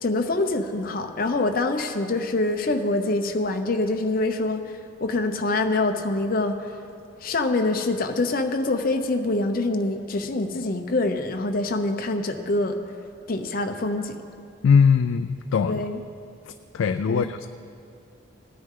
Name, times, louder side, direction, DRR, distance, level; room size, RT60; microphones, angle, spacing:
voice 1, 0.0-6.6 7.2-12.8 13.3-14.2 15.7-16.0 17.1-17.3, left 2 dB, 45° left, 5 dB, 0.7 m, -25 dB
voice 2, 14.6-15.8 16.7-17.5, left 6 dB, 75° left, 9 dB, 0.3 m, -20 dB
17.5 x 9.6 x 3.7 m, 2.5 s
head